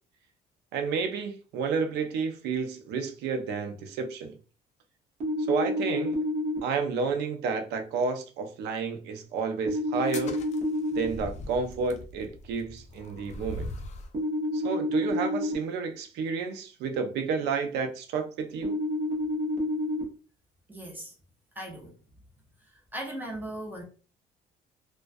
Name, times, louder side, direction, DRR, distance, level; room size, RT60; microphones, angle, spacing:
voice 1, 0.7-4.4 5.5-6.2 6.6-10.4 10.9-13.7 14.5-18.8, right 5 dB, 80° right, 0.5 m, -31 dB
sound 1, 5.2-6.6 9.7-11.1 14.1-15.5 18.6-20.0, left 1 dB, 45° right, 0.8 m, -29 dB
sound 2, 10.0-14.2, left 2 dB, 45° left, 0.4 m, -41 dB
voice 2, 20.7-21.1 21.6-21.9 22.9-23.8, right 1 dB, 10° right, 0.7 m, -37 dB
2.3 x 2.2 x 2.5 m
cardioid pair, 130°, 17 cm